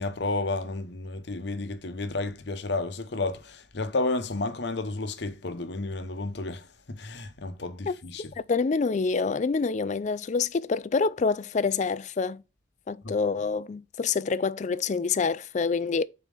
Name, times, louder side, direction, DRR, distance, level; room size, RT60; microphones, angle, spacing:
voice 1, 0.0-8.3 13.0-13.1, left 2 dB, 55° left, 0.8 m, -31 dB
voice 2, 8.5-12.4 12.9-16.0, left 4 dB, 35° left, 0.3 m, -26 dB
5.3 x 4.3 x 4.9 m
head